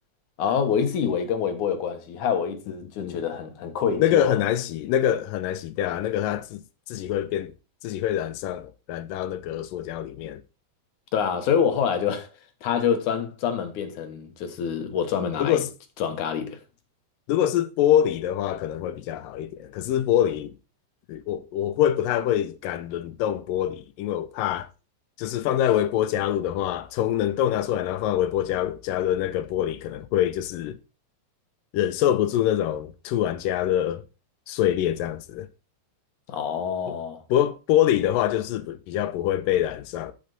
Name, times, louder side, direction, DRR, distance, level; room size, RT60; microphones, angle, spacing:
voice 1, 0.4-4.3 11.1-12.3 12.6-15.6 16.0-16.6 36.3-37.2, left 7 dB, 65° left, 2.6 m, -26 dB
voice 2, 4.0-6.6 6.9-7.5 7.8-10.4 15.4-15.7 17.3-20.5 21.1-24.7 25.2-30.8 31.7-34.0 34.5-35.5 37.3-40.1, left 11 dB, 85° left, 2.4 m, -25 dB
8.5 x 7.8 x 4.1 m
omnidirectional pair, 3.9 m